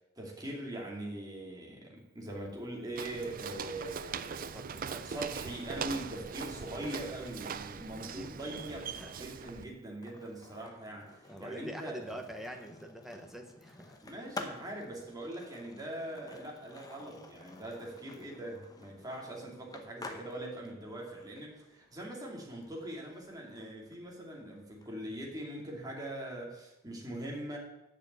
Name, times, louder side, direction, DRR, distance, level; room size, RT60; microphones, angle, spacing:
voice 1, 0.2-4.5 5.0-8.9 9.1-12.2 14.0-27.6, right 1 dB, 20° right, -2 dB, 2.6 m, -42 dB
Walk footsteps, 3.0-9.7, right 6 dB, 45° right, 0.4 m, -41 dB
voice 2, 4.5-5.2 8.0-8.6 8.9-9.1 11.3-14.0, equal, ahead, 3 dB, 1.0 m, -45 dB
Skateboard, 9.1-24.9, left 2 dB, 20° left, 0.9 m, -51 dB
8.6 x 6.7 x 8.2 m, 0.92 s
head